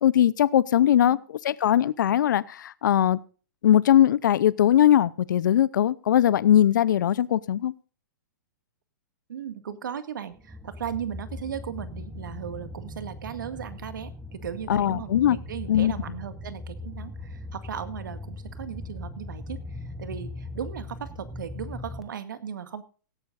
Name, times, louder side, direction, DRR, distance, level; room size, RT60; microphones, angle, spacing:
voice 1, 0.0-1.2 1.4-3.2 3.6-7.7 14.7-15.4 15.7-15.9, left 11 dB, 75° left, 19 dB, 0.6 m, -20 dB
voice 2, 9.3-22.8, right 8 dB, 85° right, 10 dB, 1.9 m, -37 dB
sound 1, 10.4-22.0, left 2 dB, 5° right, 1.1 m, -39 dB
17.0 x 13.0 x 2.5 m, 0.38 s
hypercardioid pair, 155°, 10 cm